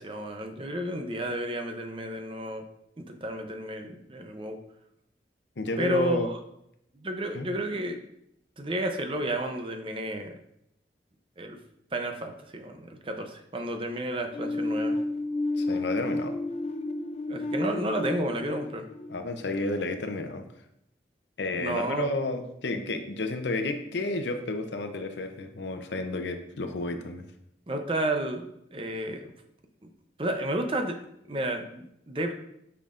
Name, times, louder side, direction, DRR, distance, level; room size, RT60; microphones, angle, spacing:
voice 1, 0.0-2.6 3.0-4.6 5.8-6.4 7.0-8.0 8.6-10.4 11.4-11.6 11.9-15.0 17.3-18.9 21.4-22.1 27.7-28.5 28.7-29.3 29.8-29.9 30.2-31.0 31.3-32.3, right 1 dB, 30° right, 5 dB, 0.6 m, -31 dB
voice 2, 5.6-6.3 7.3-7.5 15.6-16.3 19.1-20.4 21.4-27.3, left 2 dB, 80° left, 7 dB, 0.7 m, -31 dB
sound 1, 14.3-20.0, left 2 dB, 35° left, 0.5 m, -31 dB
8.7 x 5.8 x 2.5 m, 0.77 s
head